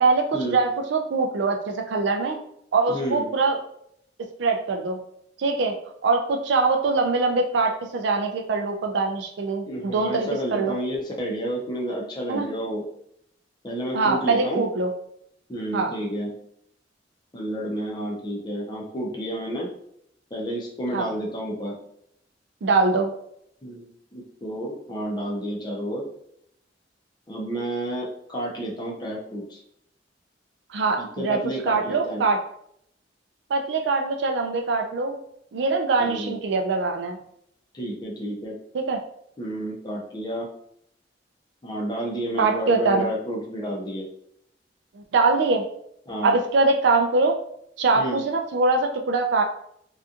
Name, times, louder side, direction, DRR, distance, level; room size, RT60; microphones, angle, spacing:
voice 1, 0.0-2.4 2.7-3.6 4.4-5.0 5.4-5.7 6.0-10.7 12.3-12.5 13.9-14.9 15.7-15.9 20.9-21.1 22.6-23.1 30.7-31.4 31.6-32.4 33.5-35.2 35.5-37.2 38.7-39.0 42.4-43.1 45.0-45.6 46.2-47.4 47.8-49.4, right 3 dB, 70° right, 4 dB, 0.4 m, -23 dB
voice 2, 2.9-3.2 9.7-12.8 13.6-14.6 15.5-16.3 17.3-19.7 20.3-21.7 23.6-26.0 27.3-29.6 31.0-32.2 36.0-36.3 37.7-38.6 39.4-40.5 41.6-44.1 46.1-46.4 48.0-48.2, right 1 dB, 25° left, -2 dB, 0.6 m, -30 dB
2.7 x 2.4 x 2.4 m, 0.71 s
head